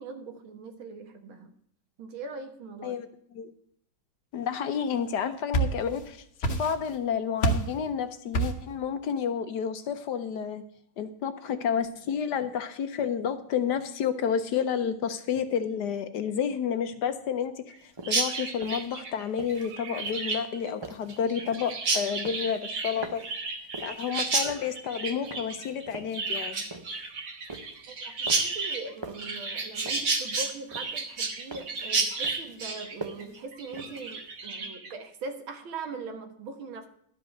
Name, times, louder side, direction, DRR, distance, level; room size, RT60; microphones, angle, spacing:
voice 1, 0.0-1.5 2.0-3.0 27.9-28.1 28.4-36.9, right 4 dB, 85° right, 6 dB, 2.1 m, -41 dB
voice 2, 4.3-10.6 11.0-23.2 23.8-26.6, left 7 dB, 65° left, 10 dB, 1.2 m, -30 dB
sound 1, 5.1-6.1 6.4-7.0 7.4-7.8 8.3-8.7, right 2 dB, 40° left, 1.3 m, -27 dB
sound 2, 17.8-34.4, right 2 dB, 30° right, 0.5 m, -45 dB
Chirp tweet, 18.0-34.9, right 3 dB, 60° right, 2.0 m, -32 dB
12.0 x 5.3 x 7.6 m, 0.68 s
omnidirectional pair, 2.2 m